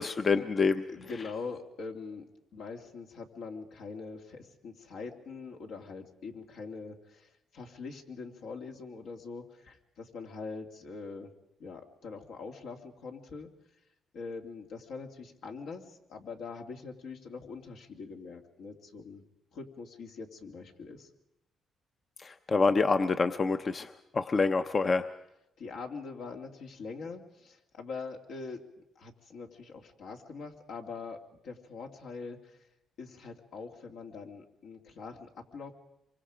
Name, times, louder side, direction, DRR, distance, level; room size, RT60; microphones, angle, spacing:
voice 1, 0.0-0.8 22.2-25.1, left 4 dB, 40° left, 9 dB, 0.7 m, -27 dB
voice 2, 0.8-2.2 2.5-11.3 11.6-13.5 14.1-19.2 19.5-21.1 25.6-28.6 29.0-32.6 33.0-35.7, left 4 dB, 80° left, 2 dB, 2.5 m, -43 dB
26.5 x 24.5 x 5.0 m, 0.86 s
cardioid pair, 90°, 0 cm